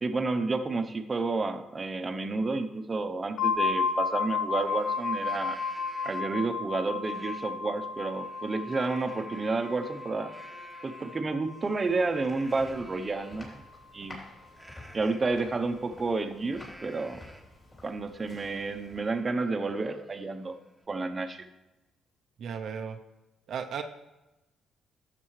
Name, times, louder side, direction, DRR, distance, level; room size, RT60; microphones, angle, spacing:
voice 1, 0.0-5.6 6.0-10.3 10.8-13.6 13.9-14.2 14.9-17.2 17.8-20.6 20.9-21.5, right 3 dB, 30° right, 7 dB, 0.7 m, -30 dB
sound 1, 3.4-13.0, left 5 dB, 75° left, 0.6 m, -33 dB
Livestock farm animals working animals, 3.9-4.0 4.4-6.5 7.0-7.5 7.9-13.4 14.5-17.6 18.0-18.1 18.5-20.9, equal, ahead, 1.1 m, -53 dB
sound 2, 11.6-19.4, left 1 dB, 30° left, 3.3 m, -51 dB
voice 2, 22.4-23.0 23.5-23.8, right 7 dB, 70° right, 5 dB, 0.6 m, -35 dB
12.0 x 7.5 x 3.2 m, 1.0 s
cardioid pair, 90°, 0 cm